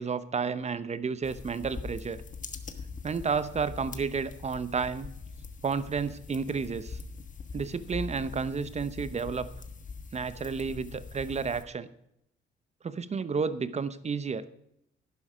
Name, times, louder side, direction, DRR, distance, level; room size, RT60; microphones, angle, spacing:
voice 1, 0.0-2.2 3.0-5.1 5.6-7.0 7.5-9.5 10.1-11.9 12.8-14.5, right 5 dB, 35° right, 14 dB, 0.9 m, -31 dB
sound 1, 1.2-11.6, left 4 dB, 40° left, 1.4 m, -42 dB
11.0 x 11.0 x 5.1 m, 0.76 s
cardioid pair, 90°, 20 cm